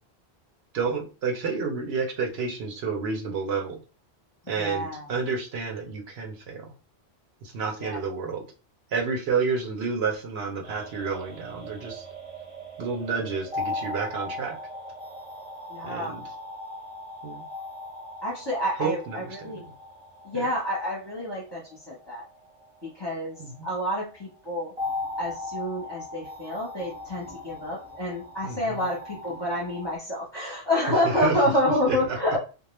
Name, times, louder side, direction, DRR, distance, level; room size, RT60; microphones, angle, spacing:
voice 1, 0.7-3.7 4.5-6.6 7.4-8.4 8.9-12.0 12.8-14.6 15.8-16.2 17.2-17.4 18.8-19.5 20.3-20.4 23.4-23.7 28.4-28.9 31.2-31.3 31.9-32.2, right 5 dB, 70° right, 1 dB, 0.8 m, -30 dB
voice 2, 4.5-5.1 7.8-8.0 15.7-16.1 18.2-19.6 20.2-22.2 22.8-23.4 23.6-24.7 25.2-32.4, left 1 dB, 25° left, -4 dB, 0.7 m, -28 dB
sound 1, 10.6-24.0 24.8-30.0, left 2 dB, 40° right, 0.7 m, -38 dB
2.3 x 2.1 x 3.0 m, 0.34 s
omnidirectional pair, 1.1 m